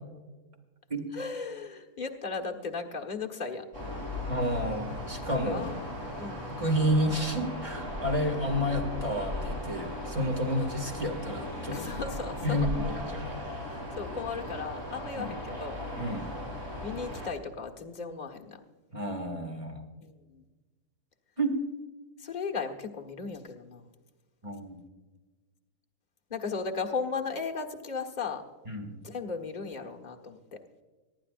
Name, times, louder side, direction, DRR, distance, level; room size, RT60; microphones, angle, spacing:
voice 1, 1.1-3.6 5.4-5.8 6.2-6.5 11.7-12.7 13.6-15.8 16.8-18.6 20.0-20.5 22.2-23.9 26.3-28.4 29.0-30.6, left 5 dB, 30° left, 3 dB, 1.4 m, -36 dB
sound 1, 3.7-17.3, left 1 dB, 45° right, 4.8 m, -37 dB
voice 2, 4.3-5.7 6.5-11.8 12.4-13.4 15.2-15.3 15.9-16.3 18.9-19.8 21.4-21.6 24.4-24.8 28.7-28.9, equal, 20° right, 3 dB, 2.2 m, -30 dB
24.5 x 11.5 x 2.5 m, 1.3 s
omnidirectional pair, 1.8 m